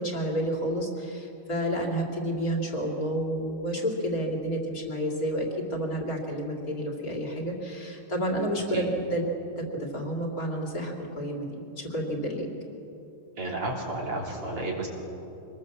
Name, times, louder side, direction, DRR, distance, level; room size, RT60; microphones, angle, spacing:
voice 1, 0.0-9.2 9.6-11.5 11.8-12.5, right 1 dB, 40° left, 0 dB, 3.3 m, -30 dB
voice 2, 13.4-14.9, right 2 dB, 80° right, -1 dB, 4.4 m, -32 dB
25.5 x 20.0 x 7.4 m, 2.9 s
omnidirectional pair, 2.4 m